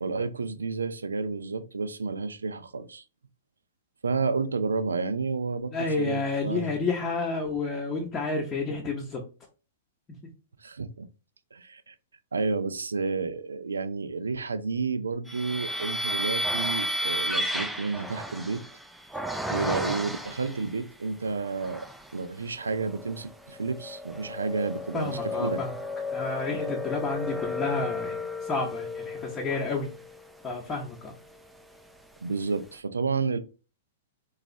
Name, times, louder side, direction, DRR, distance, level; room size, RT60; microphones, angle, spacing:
voice 1, 0.0-3.0 4.0-6.7 10.6-11.1 11.5-11.9 12.3-18.6 19.5-21.9 22.1-25.6 32.2-33.4, right 4 dB, 85° right, 0.3 m, -31 dB
voice 2, 5.7-9.2 24.9-25.8 26.1-29.9 30.4-31.1, left 3 dB, 20° left, 0.7 m, -30 dB
sound 1, 15.3-20.7 21.3-22.1 22.6-31.8, left 1 dB, 5° right, 0.4 m, -33 dB
3.9 x 2.3 x 2.5 m
hypercardioid pair, 115°, 0 cm